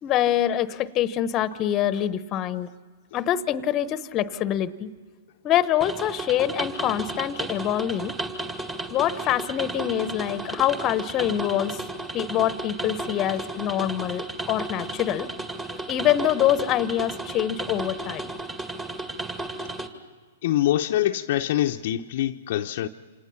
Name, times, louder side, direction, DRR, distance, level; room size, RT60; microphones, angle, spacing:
voice 1, 0.0-2.7 3.1-4.9 5.4-8.2 8.9-11.8 12.1-15.3 15.7-18.3, left 11 dB, 30° left, 1.0 m, -25 dB
sound 1, 5.8-19.9, right 2 dB, 15° right, 2.1 m, -34 dB
voice 2, 20.4-22.9, left 13 dB, 55° left, 0.8 m, -24 dB
28.5 x 26.5 x 5.8 m
hypercardioid pair, 120°, 0 cm